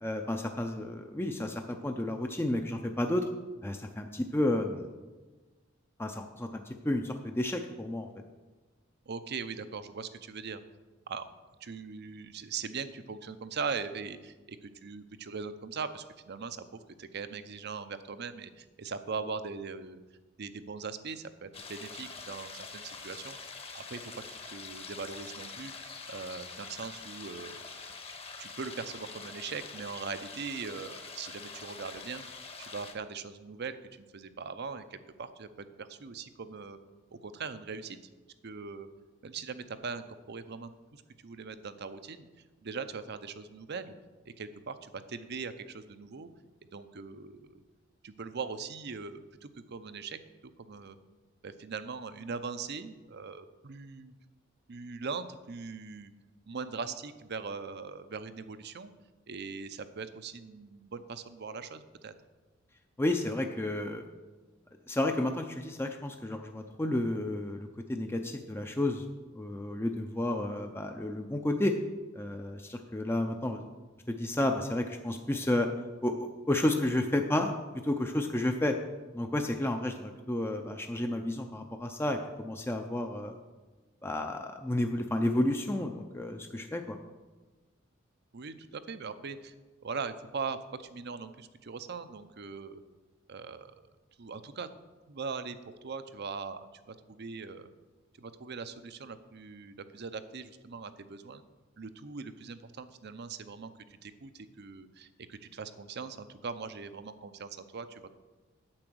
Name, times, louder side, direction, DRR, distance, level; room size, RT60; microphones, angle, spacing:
voice 1, 0.0-3.3 3.6-4.9 6.0-8.1 63.0-64.0 64.9-69.0 69.3-71.7 72.1-73.6 74.1-75.7 76.0-77.5 77.8-78.8 79.1-83.3 84.0-87.0, left 1 dB, 10° left, 4 dB, 0.5 m, -31 dB
voice 2, 9.1-10.6 11.1-11.3 11.6-16.6 17.0-20.0 20.4-23.4 23.7-27.7 28.4-32.2 32.6-35.5 35.8-36.8 37.1-38.0 38.4-38.9 39.2-42.3 42.6-43.9 44.4-46.3 46.7-47.6 48.0-50.2 50.7-51.0 51.4-54.1 54.7-56.1 56.5-58.9 59.3-62.1 88.3-89.5 89.8-92.8 93.3-93.7 94.2-94.7 95.1-95.6 95.8-96.6 96.9-97.7 98.2-101.4 101.8-103.7 104.0-108.1, right 5 dB, 55° right, 11 dB, 0.6 m, -40 dB
sound 1, 21.5-32.9, left 4 dB, 30° left, 1.0 m, -45 dB
8.7 x 7.8 x 6.2 m, 1.3 s
head